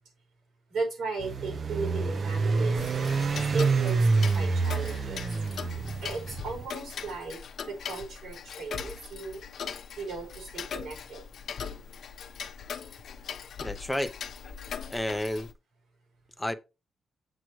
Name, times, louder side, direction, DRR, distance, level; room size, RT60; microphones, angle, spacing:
voice 1, 0.7-2.8 3.5-5.2 6.0-7.4 7.7-9.4 10.0-11.3, right 4 dB, 75° right, 5.2 m, -36 dB
sound 1, 1.2-6.7, right 4 dB, 40° right, 0.6 m, -27 dB
Tick-tock, 2.8-15.5, left 7 dB, 55° left, 0.8 m, -40 dB
voice 2, 13.6-14.1 14.9-15.5 16.4-16.5, left 1 dB, 5° left, 0.6 m, -31 dB
7.7 x 7.6 x 3.0 m
wide cardioid pair, 155°, 0 cm